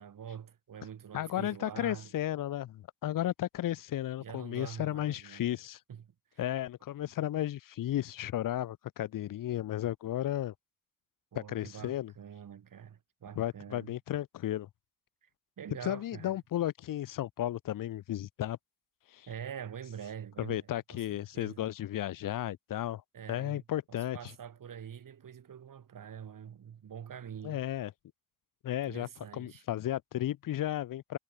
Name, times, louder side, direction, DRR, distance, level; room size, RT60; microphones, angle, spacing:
voice 1, 0.0-2.1 4.2-5.5 5.9-6.1 6.3-6.5 11.3-13.9 15.2-15.3 15.6-16.4 19.3-21.6 23.1-27.6 28.9-29.6, right 8 dB, 80° right, 6.6 m, -45 dB
voice 2, 1.1-5.8 6.4-10.5 11.4-12.1 13.4-14.7 15.8-18.6 19.1-19.3 20.4-23.0 23.3-24.2 27.4-27.9 28.6-31.2, left 13 dB, 80° left, 0.6 m, -34 dB
wide cardioid pair, 150°, 32 cm